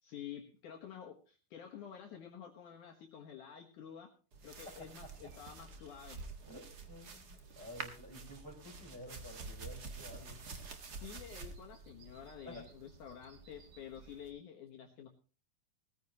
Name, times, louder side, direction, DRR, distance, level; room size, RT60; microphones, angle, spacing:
voice 1, 0.0-4.1 4.4-6.2 11.0-15.1, left 9 dB, 65° left, 2 dB, 2.6 m, -50 dB
sound 1, 4.3-14.3, right 4 dB, 50° right, 1.2 m, -49 dB
voice 2, 4.7-5.3 6.5-10.5 12.4-12.7, left 1 dB, 5° right, 0 dB, 4.4 m, -51 dB
19.5 x 14.5 x 3.0 m, 0.37 s
omnidirectional pair, 4.3 m